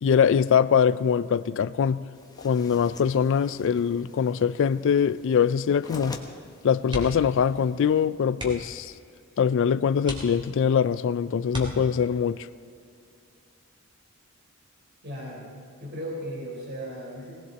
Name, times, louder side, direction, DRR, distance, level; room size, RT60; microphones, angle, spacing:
voice 1, 0.0-2.0 2.4-6.2 6.6-8.9 9.4-12.5, left 7 dB, 60° left, 0.3 m, -23 dB
sound 1, 2.1-8.1, left 2 dB, 20° left, 1.2 m, -46 dB
sound 2, 6.9-7.4 7.7-7.9 8.3-8.8 9.4-9.5 10.0-10.8 11.5-12.3 13.8-14.1 14.5-14.6, equal, 25° right, 2.8 m, -37 dB
voice 2, 15.0-15.5 15.8-17.3, equal, 55° right, 4.2 m, -36 dB
19.0 x 18.5 x 4.1 m
head